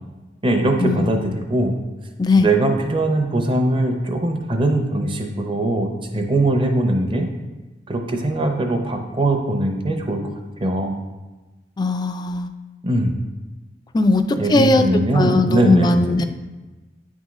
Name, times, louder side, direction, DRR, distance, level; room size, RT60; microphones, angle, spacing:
voice 1, 0.4-1.8 2.4-7.3 7.9-10.3 10.6-11.0 12.8-13.1 14.4-16.0, right 1 dB, 30° right, 4 dB, 0.6 m, -21 dB
voice 2, 11.8-12.5 13.9-14.9 15.1-16.2, left 2 dB, 25° left, 8 dB, 0.3 m, -19 dB
9.3 x 3.6 x 3.1 m, 1.2 s
head